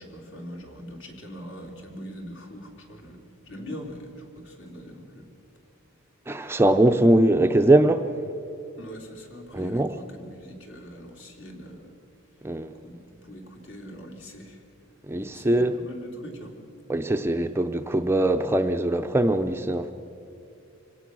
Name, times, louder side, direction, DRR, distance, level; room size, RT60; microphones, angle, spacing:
voice 1, 0.0-5.3 8.8-11.9 12.8-14.6 15.2-16.5, equal, 60° left, 1 dB, 3.2 m, -42 dB
voice 2, 6.3-8.0 9.5-9.9 12.4-12.7 15.1-15.7 16.9-19.9, right 1 dB, 10° right, 7 dB, 0.5 m, -21 dB
24.5 x 17.5 x 6.2 m, 2.6 s
head